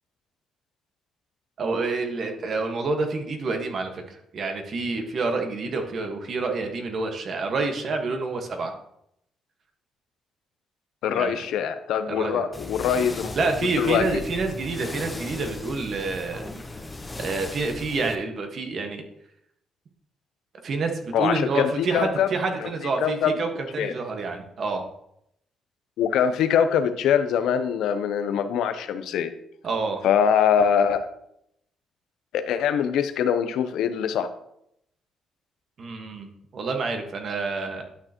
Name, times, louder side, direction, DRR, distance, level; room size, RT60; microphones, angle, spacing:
voice 1, 1.6-8.7 11.1-11.4 12.1-12.5 13.3-16.4 17.2-19.0 20.6-24.8 29.6-30.0 35.8-37.8, right 3 dB, 55° right, 4 dB, 1.5 m, -28 dB
voice 2, 11.0-13.5 13.8-14.2 21.1-22.3 22.6-22.7 23.0-23.3 23.8-23.9 26.0-29.3 30.0-31.1 32.3-34.3, left 8 dB, 80° left, 10 dB, 0.7 m, -23 dB
sound 1, 12.5-18.2, left 2 dB, 20° left, 0.9 m, -37 dB
11.0 x 6.6 x 3.0 m, 0.76 s
cardioid pair, 90°, 0 cm